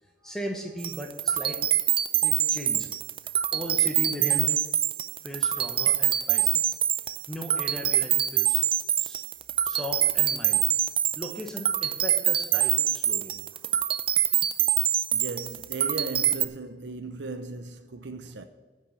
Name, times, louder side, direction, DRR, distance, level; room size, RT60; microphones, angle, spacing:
voice 1, 0.0-1.6 2.2-2.9 3.2-4.6 5.2-6.6 7.3-8.6 9.0-9.2 9.6-10.6 11.1-13.4 13.6-13.7, equal, 5° left, 1.2 m, -37 dB
sound 1, 0.8-16.5, right 11 dB, 30° right, 0.4 m, -25 dB
voice 2, 15.1-18.4, right 3 dB, 80° right, 0.7 m, -37 dB
9.6 x 6.3 x 8.2 m
head